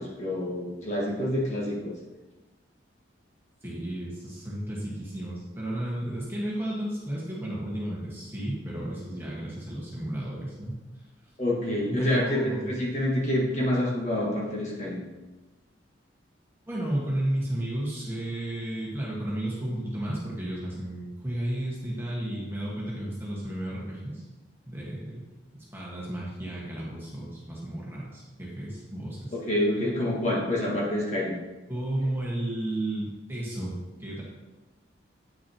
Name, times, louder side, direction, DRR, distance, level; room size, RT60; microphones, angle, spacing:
voice 1, 0.0-1.9 11.4-15.0 29.3-31.4, left 1 dB, 35° left, -5 dB, 1.7 m, -27 dB
voice 2, 3.6-10.8 11.9-12.8 16.7-24.2 24.7-25.2 25.5-29.3 31.7-34.2, right 1 dB, 10° right, -5 dB, 1.5 m, -33 dB
8.6 x 6.3 x 2.9 m, 1.1 s
head